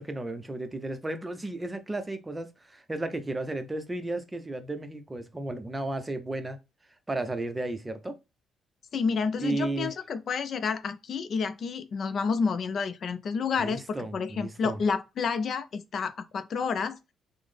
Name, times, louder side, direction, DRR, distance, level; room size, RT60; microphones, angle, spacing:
voice 1, 0.0-6.6 7.1-8.2 9.4-9.9 13.6-14.8, right 2 dB, 20° right, 0.5 m, -33 dB
voice 2, 8.9-17.0, left 5 dB, 55° left, 0.3 m, -30 dB
3.7 x 2.0 x 3.2 m
cardioid pair, 90°, 0 cm